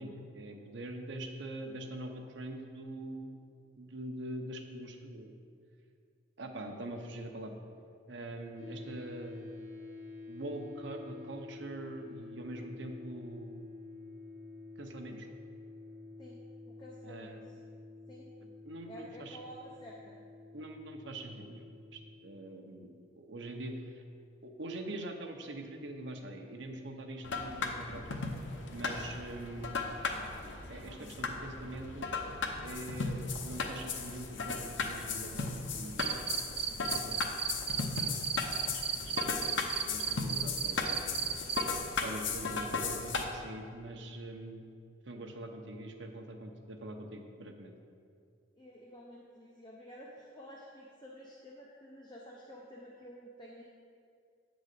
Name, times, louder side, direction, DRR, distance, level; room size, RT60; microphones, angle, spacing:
voice 1, 0.0-3.4 3.8-5.3 6.4-7.6 8.1-9.7 10.3-13.7 14.8-15.3 17.0-17.5 18.4-19.4 20.5-24.0 24.4-28.2 28.7-29.8 30.7-32.1 32.6-36.2 36.8-37.3 38.0-38.2 38.6-41.4 42.0-44.6 45.1-47.7, right 1 dB, 65° right, 4 dB, 0.8 m, -44 dB
sound 1, 8.6-22.1, left 3 dB, 15° right, 2.1 m, -49 dB
voice 2, 16.7-17.7 18.1-18.3 18.9-20.2 48.5-53.6, equal, 20° left, -3 dB, 0.7 m, -51 dB
sound 2, 27.2-43.2, left 4 dB, 65° left, 0.7 m, -36 dB
Cricket, 36.0-41.6, right 8 dB, 30° right, 0.3 m, -33 dB
8.4 x 4.0 x 6.6 m, 2.3 s
head